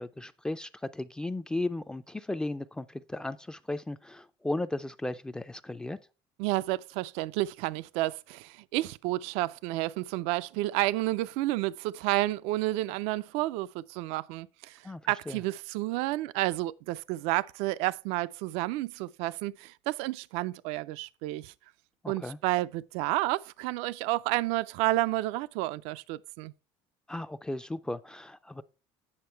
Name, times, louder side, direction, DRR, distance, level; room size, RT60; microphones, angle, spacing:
voice 1, 0.0-6.0 14.8-15.4 22.0-22.4 27.1-28.6, left 2 dB, 5° left, 0.3 m, -35 dB
voice 2, 6.4-21.5 22.1-26.5, right 18 dB, 80° right, 0.4 m, -31 dB
8.6 x 6.3 x 4.4 m
cardioid pair, 135°, 10 cm